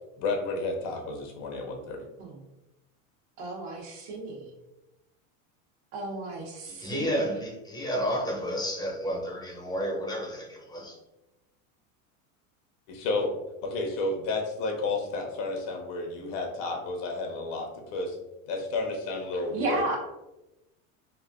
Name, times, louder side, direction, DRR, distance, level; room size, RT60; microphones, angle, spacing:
voice 1, 0.2-2.0 12.9-13.3 13.6-18.2 18.5-19.9, left 3 dB, 70° left, 2 dB, 0.9 m, -31 dB
voice 2, 3.4-4.5 5.9-7.2 19.5-20.0, right 2 dB, 70° right, 0 dB, 1.0 m, -33 dB
voice 3, 6.7-11.0, equal, 10° left, -2 dB, 0.5 m, -31 dB
3.2 x 2.5 x 2.4 m, 0.96 s
supercardioid pair, 130°, 39 cm